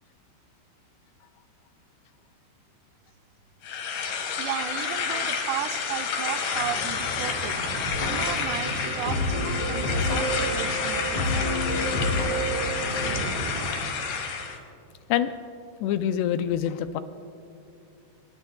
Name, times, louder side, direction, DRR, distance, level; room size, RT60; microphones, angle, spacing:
sound 1, 3.6-14.6, left 6 dB, 65° left, 3.3 m, -30 dB
voice 1, 4.4-7.6 8.1-11.5, right 11 dB, 80° right, 8 dB, 2.6 m, -34 dB
sound 2, 6.5-13.8, right 2 dB, 65° right, 3.0 m, -36 dB
sound 3, 7.9-13.1, left 1 dB, 40° left, 5.1 m, -29 dB
voice 2, 15.8-17.0, left 10 dB, 80° left, 10 dB, 2.6 m, -25 dB
24.5 x 22.0 x 2.3 m, 2.6 s
omnidirectional pair, 5.0 m